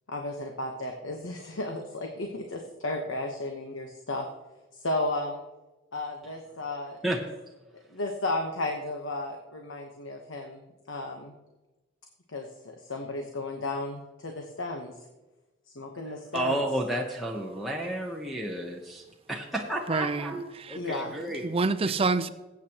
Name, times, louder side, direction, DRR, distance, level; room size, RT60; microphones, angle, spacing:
voice 1, 0.1-4.3 4.7-5.4 5.9-7.0 7.7-10.6 10.9-11.3 12.3-12.5 12.8-14.9 15.7-16.7 20.7-21.1, left 2 dB, 75° left, 1.1 m, -34 dB
voice 2, 16.3-21.5, right 1 dB, ahead, 0.9 m, -32 dB
voice 3, 19.9-20.8 21.4-22.3, right 3 dB, 30° right, 0.6 m, -27 dB
19.5 x 8.5 x 3.0 m
head